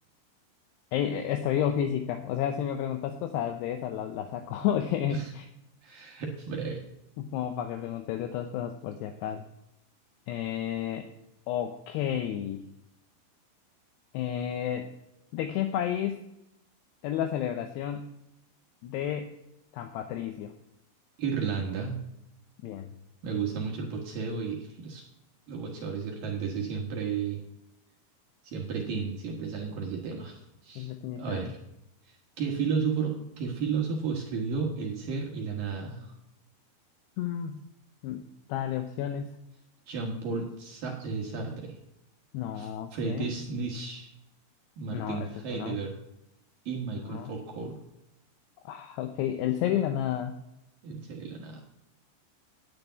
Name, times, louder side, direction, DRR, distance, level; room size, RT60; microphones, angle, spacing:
voice 1, 0.9-5.4 7.2-9.4 10.3-11.1 11.5-12.6 14.1-14.9 15.3-16.2 17.0-18.1 18.8-19.4 19.7-20.5 22.6-22.9 30.8-31.5 37.2-37.7 38.0-38.2 38.5-39.4 42.3-43.3 44.9-45.8 47.0-47.3 48.7-50.3, left 10 dB, 80° left, 6 dB, 2.5 m, -31 dB
voice 2, 5.8-6.8 21.2-22.0 23.2-25.0 25.5-27.4 28.4-31.6 32.1-36.1 39.9-41.8 42.5-44.1 44.8-46.0 46.7-47.8 50.8-51.6, right 5 dB, 60° right, 0 dB, 2.5 m, -33 dB
10.5 x 6.7 x 9.2 m, 0.87 s
omnidirectional pair, 5.5 m